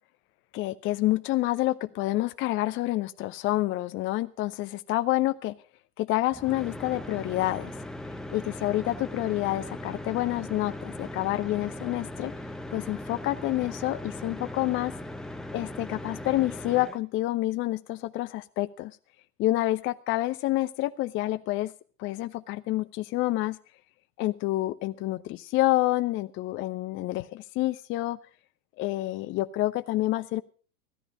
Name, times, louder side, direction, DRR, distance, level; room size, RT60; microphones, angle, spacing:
voice 1, 0.5-5.5 6.0-7.7 8.3-12.3 12.7-14.9 15.5-18.9 19.4-21.7 22.0-23.6 24.2-28.2 28.8-30.4, left 17 dB, 25° left, 13 dB, 0.6 m, -28 dB
sound 1, 6.3-17.0, left 1 dB, ahead, 0.9 m, -39 dB
15.5 x 13.5 x 5.1 m, 0.38 s
figure-of-eight pair, 90°, 46 cm